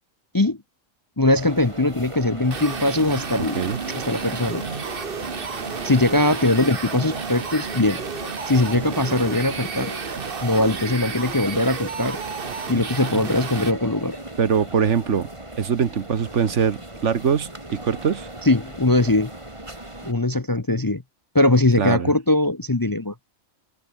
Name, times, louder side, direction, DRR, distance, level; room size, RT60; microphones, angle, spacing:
voice 1, 1.2-3.6 3.9-4.6 5.8-8.0 8.5-9.9 10.4-12.2 12.7-14.2 18.4-19.3 20.0-21.0 21.3-23.1, left 2 dB, 20° left, 0.7 m, -21 dB
sound 1, 1.3-20.1, right 1 dB, 20° right, 3.6 m, -38 dB
sound 2, 2.4-13.7, right 5 dB, 45° right, 1.5 m, -32 dB
voice 2, 3.4-3.8 14.4-15.3 15.6-18.3 21.8-22.1, right 7 dB, 60° right, 1.5 m, -22 dB
open air
omnidirectional pair, 1.4 m